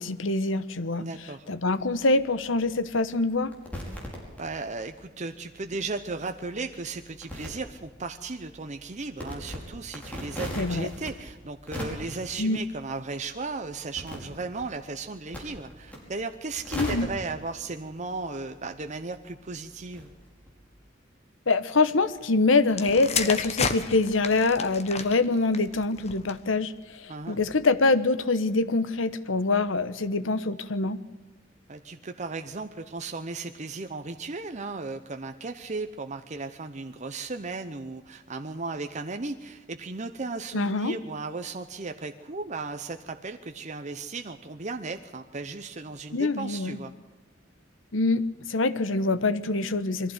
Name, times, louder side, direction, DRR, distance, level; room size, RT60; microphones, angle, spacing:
voice 1, 0.0-1.1 1.5-3.5 10.6-10.9 12.4-12.6 16.7-17.1 21.5-31.0 40.5-41.0 46.1-46.8 47.9-48.2 48.5-50.1, left 3 dB, 80° left, 12 dB, 1.1 m, -25 dB
voice 2, 1.0-1.5 4.4-20.1 27.1-27.4 31.7-46.9, right 3 dB, 35° right, 7 dB, 0.8 m, -36 dB
sound 1, 1.6-4.9 5.3-20.7, equal, 10° left, 5.2 m, -42 dB
sound 2, 22.7-26.5 27.3-27.6, left 5 dB, 35° left, 1.4 m, -32 dB
22.0 x 15.0 x 8.0 m, 1.2 s
head